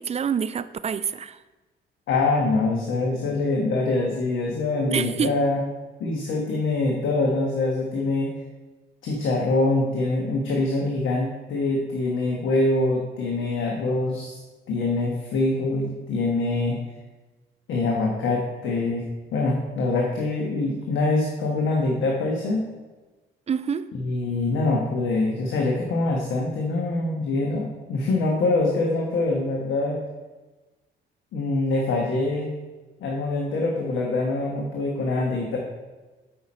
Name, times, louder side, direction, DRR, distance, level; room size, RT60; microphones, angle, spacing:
voice 1, 0.0-1.4 4.9-5.3 23.5-23.9, right 7 dB, 35° right, 14 dB, 0.4 m, -27 dB
voice 2, 2.1-5.6 6.0-8.3 9.0-14.4 14.7-16.8 17.7-19.0 19.3-22.6 23.9-30.0 31.3-32.5 33.0-35.6, left 2 dB, 80° left, -1 dB, 1.3 m, -24 dB
8.8 x 5.8 x 4.3 m, 1.2 s
cardioid pair, 90°, 20 cm